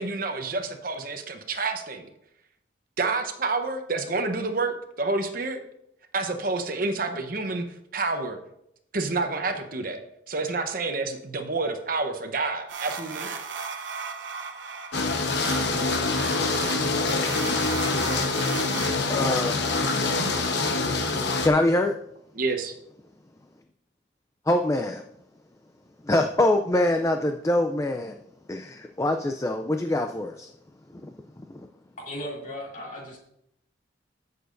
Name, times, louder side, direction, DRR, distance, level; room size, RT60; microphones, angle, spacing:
voice 1, 0.0-2.1 3.0-5.6 6.1-7.6 7.9-8.4 8.9-10.0 10.3-13.4 22.3-22.7, right 3 dB, 45° right, 6 dB, 0.9 m, -28 dB
sound 1, 12.7-18.9, right 5 dB, 75° right, 0.8 m, -36 dB
sound 2, 14.9-21.5, left 3 dB, 60° left, 1.0 m, -25 dB
voice 2, 19.1-19.6 21.4-21.9 24.5-25.0 26.0-28.2 28.5-30.5 31.0-31.1 31.5-31.7, left 1 dB, 15° left, 6 dB, 0.4 m, -24 dB
voice 3, 32.0-33.2, equal, 40° left, -2 dB, 2.7 m, -36 dB
14.5 x 6.8 x 2.6 m, 0.76 s
head